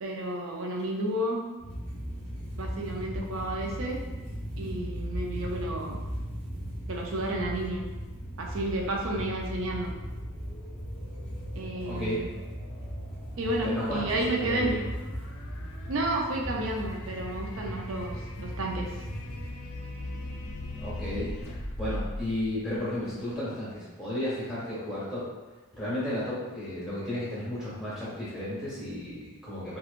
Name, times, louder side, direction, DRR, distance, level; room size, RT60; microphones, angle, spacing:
voice 1, 0.0-1.4 2.6-4.0 4.6-6.0 6.9-7.8 8.4-9.9 11.6-12.3 13.4-14.7 15.9-18.9, right 1 dB, 65° right, 0 dB, 0.5 m, -31 dB
sound 1, 1.6-19.5, equal, 30° right, 0.8 m, -38 dB
sound 2, 8.1-23.3, left 1 dB, 80° left, 0.5 m, -42 dB
voice 2, 11.8-12.2 13.6-14.9 20.8-21.3 21.8-25.2 25.8-29.8, left 1 dB, ahead, -11 dB, 1.2 m, -33 dB
2.9 x 2.3 x 2.4 m, 1.2 s
head